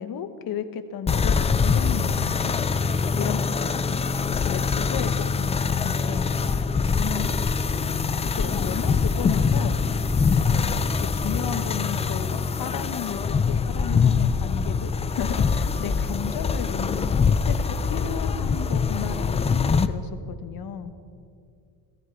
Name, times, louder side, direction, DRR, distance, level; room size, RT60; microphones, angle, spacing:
voice 1, 0.0-2.5 3.1-4.0 4.5-6.3 7.0-7.3 7.9-9.8 10.5-13.2 13.5-20.9, left 8 dB, 50° left, 10 dB, 1.2 m, -34 dB
sound 1, 1.1-19.9, left 5 dB, 15° left, 0.3 m, -24 dB
15.5 x 14.5 x 4.6 m, 2.3 s
cardioid pair, 110°, 44 cm